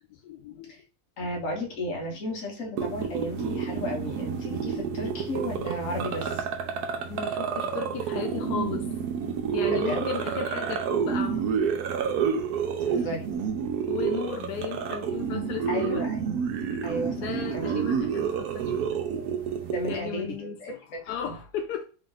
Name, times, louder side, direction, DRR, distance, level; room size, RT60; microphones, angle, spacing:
voice 1, 0.1-0.7 7.1-8.9 9.5-11.5 12.9-13.1 13.9-16.0 17.2-18.8 19.9-21.9, left 7 dB, 85° left, 1.1 m, -35 dB
voice 2, 1.2-6.4 9.7-10.1 12.8-13.3 15.7-16.4 16.8-17.6 19.7-21.0 21.3-21.4, left 1 dB, 60° left, 1.4 m, -34 dB
sound 1, 2.8-20.0, right 7 dB, 80° right, 1.1 m, -29 dB
3.5 x 2.5 x 3.8 m
omnidirectional pair, 1.7 m